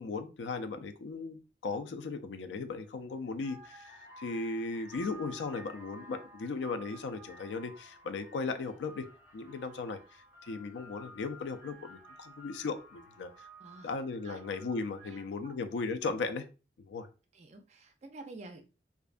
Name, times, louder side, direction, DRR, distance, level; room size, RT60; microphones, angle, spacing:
voice 1, 0.0-9.0 9.3-13.5 13.8-16.4 16.8-17.1, left 4 dB, 75° left, 8 dB, 0.4 m, -37 dB
sound 1, 2.9-3.0 3.3-15.4, right 1 dB, 15° right, 0.7 m, -53 dB
voice 2, 13.6-13.9 14.2-14.4 15.0-15.5 17.3-18.6, right 2 dB, 40° right, 6 dB, 0.4 m, -49 dB
2.5 x 2.1 x 2.4 m, 0.33 s
head